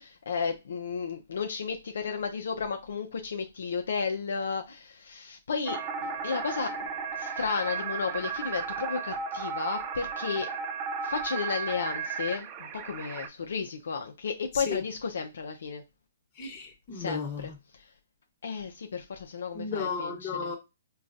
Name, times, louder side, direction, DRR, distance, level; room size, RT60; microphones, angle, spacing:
voice 1, 0.0-6.7 7.2-10.5 11.0-15.8 16.9-17.5 18.4-20.5, left 5 dB, 70° left, 0.5 m, -33 dB
sound 1, 5.7-13.3, right 6 dB, 30° right, 0.4 m, -34 dB
voice 2, 16.4-17.6 19.5-20.6, left 5 dB, 30° left, 1.0 m, -34 dB
3.8 x 2.3 x 2.5 m
hypercardioid pair, 145°, 0 cm